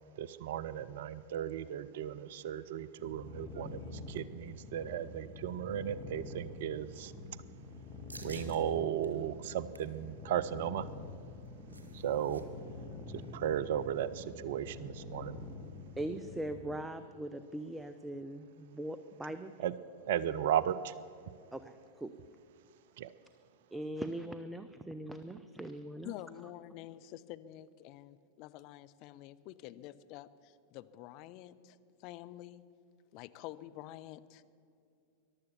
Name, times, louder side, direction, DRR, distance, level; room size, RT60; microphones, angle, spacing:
voice 1, 0.2-7.1 8.2-10.9 11.9-12.4 13.1-15.4 19.6-19.7 20.1-20.9 23.0-23.1, right 10 dB, 55° right, 17 dB, 0.4 m, -35 dB
sound 1, 3.0-16.8, left 3 dB, 25° left, 1.9 m, -47 dB
sound 2, 8.1-8.6 9.0-9.1 9.5-10.0 11.2-12.4 12.7-12.8 13.1-13.4, right 2 dB, 75° right, 1.4 m, -52 dB
voice 2, 16.0-19.5 21.5-22.1 23.7-26.1, right 1 dB, 5° right, 10 dB, 0.5 m, -41 dB
voice 3, 26.0-32.6 33.1-34.4, left 14 dB, 40° left, 12 dB, 0.5 m, -48 dB
14.5 x 11.5 x 7.0 m, 2.5 s
figure-of-eight pair, 90°, 0 cm